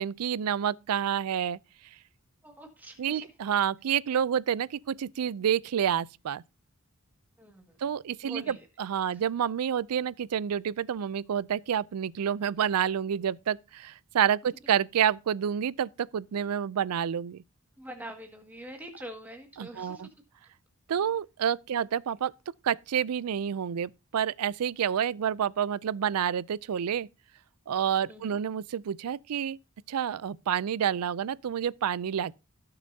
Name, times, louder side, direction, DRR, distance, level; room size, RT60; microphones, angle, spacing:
voice 1, 0.0-1.6 3.0-6.4 7.8-17.4 19.6-20.1 20.9-22.3 22.6-27.1 27.7-29.6 29.9-32.4, right 8 dB, 90° right, 0.4 m, -29 dB
voice 2, 2.4-3.3 7.4-7.9 8.2-8.7 9.0-9.2 17.8-20.0 21.0-21.1 21.7-21.8 28.1-28.4, right 1 dB, 10° right, 1.9 m, -45 dB
17.5 x 6.8 x 2.7 m
head